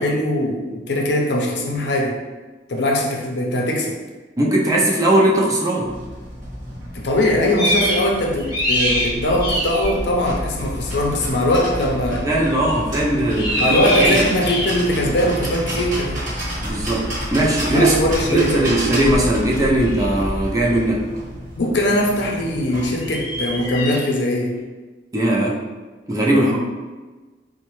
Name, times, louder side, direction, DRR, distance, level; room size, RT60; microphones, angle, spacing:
voice 1, 0.0-2.2 2.7-4.0 6.9-12.2 13.6-16.2 17.7-18.7 21.6-24.6 26.3-26.6, left 1 dB, 75° left, 0 dB, 0.6 m, -21 dB
voice 2, 4.4-5.9 12.2-13.6 14.0-14.3 16.6-18.0 18.3-21.1 25.1-25.6 26.1-26.6, right 1 dB, 20° right, -3 dB, 0.4 m, -19 dB
sound 1, 5.8-23.8, equal, 45° right, 1.1 m, -29 dB
sound 2, 7.6-8.1 8.4-9.9 12.5-12.8 13.2-15.0 17.7-17.8 19.7-20.1 23.0-24.1, left 1 dB, 25° left, 0.7 m, -24 dB
4.1 x 2.1 x 3.1 m, 1.3 s
head